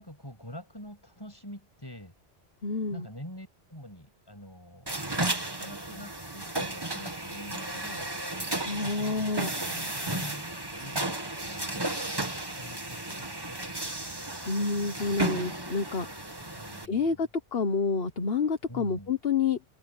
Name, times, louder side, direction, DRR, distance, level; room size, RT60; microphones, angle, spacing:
voice 1, 0.0-2.1 2.9-8.1 8.6-9.2 9.4-10.5 10.8-13.9 16.6-17.2 18.7-19.1, equal, 20° left, 6.9 m, -46 dB
voice 2, 2.6-3.1 8.6-9.5 14.5-16.1 16.9-19.6, left 4 dB, 60° left, 1.4 m, -28 dB
sound 1, 4.9-16.9, right 1 dB, 20° right, 1.8 m, -34 dB
omnidirectional pair, 1.2 m